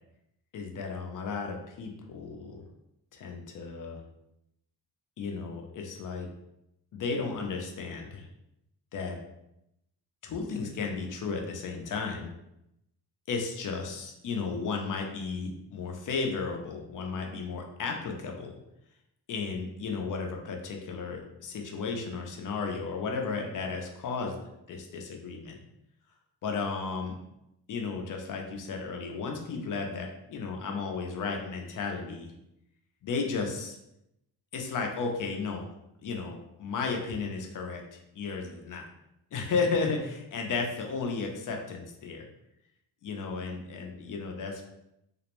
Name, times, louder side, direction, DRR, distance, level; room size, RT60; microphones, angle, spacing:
voice 1, 0.5-2.6 3.1-4.0 5.2-6.3 6.9-8.3 8.9-9.2 10.2-12.3 13.3-18.6 19.3-24.4 24.7-25.6 26.4-27.2 27.7-32.3 33.0-33.8 34.5-35.7 36.0-38.9 39.3-42.3 43.0-44.6, left 4 dB, 50° left, 2 dB, 0.4 m, -34 dB
2.4 x 2.0 x 2.9 m, 0.84 s
wide cardioid pair, 165°, 40 cm